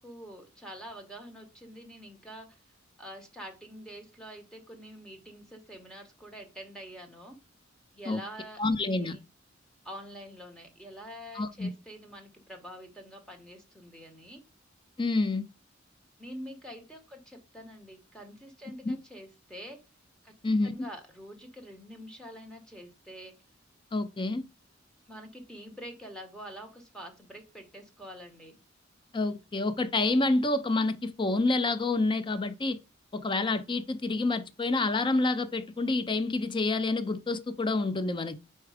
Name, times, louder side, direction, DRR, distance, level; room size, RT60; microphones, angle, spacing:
voice 1, 0.0-2.6 3.0-7.4 7.9-9.2 9.8-14.4 16.2-19.8 20.2-20.3 20.6-23.3 25.1-28.6, equal, 5° left, 1.2 m, -46 dB
voice 2, 8.6-9.2 11.3-11.7 15.0-15.4 18.8-19.0 20.4-20.9 23.9-24.4 29.1-32.8 33.1-38.4, left 2 dB, 25° left, 0.5 m, -28 dB
4.7 x 4.4 x 4.9 m
head